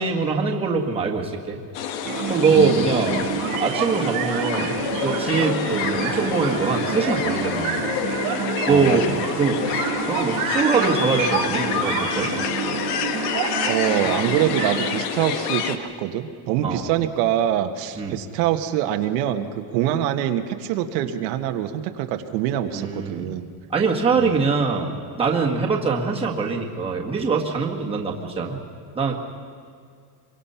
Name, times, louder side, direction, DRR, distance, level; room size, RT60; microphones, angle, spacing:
voice 1, 0.0-1.6 2.3-3.2 3.6-4.8 5.0-7.8 8.7-9.1 9.4-12.3 16.6-16.8 18.0-18.1 22.7-23.3 23.7-24.9 25.2-28.6 28.9-29.2, right 4 dB, 10° right, -1 dB, 1.7 m, -23 dB
sound 1, 1.7-15.8, left 8 dB, 80° left, 1.6 m, -27 dB
sound 2, 2.0-15.1, right 9 dB, 45° right, 1.0 m, -28 dB
voice 2, 2.5-2.9 8.7-9.3 13.7-23.5 24.1-24.4 27.8-28.0, right 11 dB, 80° right, 6 dB, 1.5 m, -25 dB
25.5 x 23.5 x 5.7 m, 2.2 s
cardioid pair, 170°, 48 cm